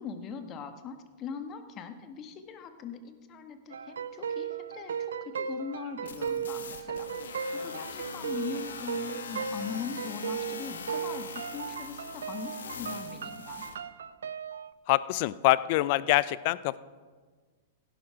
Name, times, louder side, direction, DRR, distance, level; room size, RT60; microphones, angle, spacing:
voice 1, 0.0-13.6, left 6 dB, 35° left, 8 dB, 1.4 m, -41 dB
sound 1, 3.7-14.7, right 7 dB, 80° right, 0.6 m, -36 dB
sound 2, 6.1-13.8, left 5 dB, 80° left, 1.3 m, -42 dB
voice 2, 14.9-16.8, left 17 dB, 50° left, 19 dB, 0.5 m, -25 dB
16.0 x 11.5 x 4.8 m, 1.5 s
hypercardioid pair, 105°, 0 cm